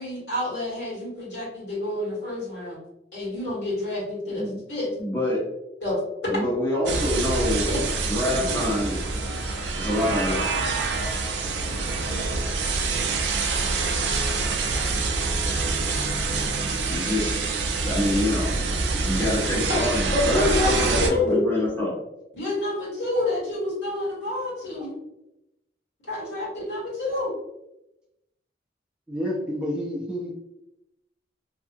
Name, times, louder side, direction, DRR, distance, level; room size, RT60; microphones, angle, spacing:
voice 1, 0.0-2.8 3.1-4.9 5.8-6.0 8.3-8.5 20.1-21.4 22.3-25.0 26.0-27.3, left 2 dB, 75° left, -7 dB, 1.5 m, -28 dB
voice 2, 5.0-5.4 6.3-7.7 8.1-9.0 9.7-10.5 16.9-17.4 17.8-18.5 18.9-22.0, left 1 dB, 10° left, -7 dB, 0.8 m, -26 dB
sound 1, 6.9-21.1, right 3 dB, 75° right, 0.4 m, -26 dB
voice 3, 29.1-30.3, equal, 5° right, -4 dB, 0.4 m, -29 dB
2.7 x 2.3 x 2.6 m, 0.89 s
head